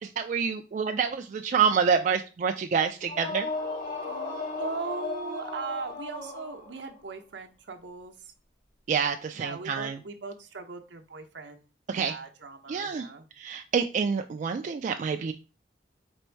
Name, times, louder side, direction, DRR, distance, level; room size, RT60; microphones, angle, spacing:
voice 1, 0.0-3.5 8.9-10.0 11.9-12.2 12.7-13.1 13.4-15.3, right 6 dB, 45° right, 6 dB, 0.3 m, -27 dB
sound 1, 3.0-7.0, left 3 dB, 55° left, 1.7 m, -35 dB
voice 2, 4.0-8.3 9.3-11.6 11.9-13.3, right 4 dB, 70° right, 5 dB, 0.7 m, -39 dB
4.3 x 2.6 x 4.4 m, 0.31 s
head